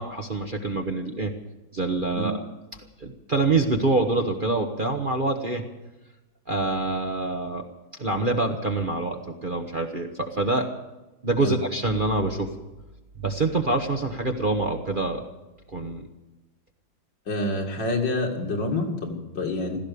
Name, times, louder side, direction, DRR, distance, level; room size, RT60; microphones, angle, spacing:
voice 1, 0.0-1.3 1.7-2.4 3.0-5.6 6.5-7.7 8.0-10.7 11.2-12.5 13.2-15.2 15.7-16.1, right 2 dB, 35° right, 3 dB, 1.0 m, -25 dB
voice 2, 17.3-19.8, left 2 dB, 70° left, 2 dB, 3.0 m, -27 dB
16.0 x 13.5 x 6.8 m, 1.1 s
omnidirectional pair, 2.0 m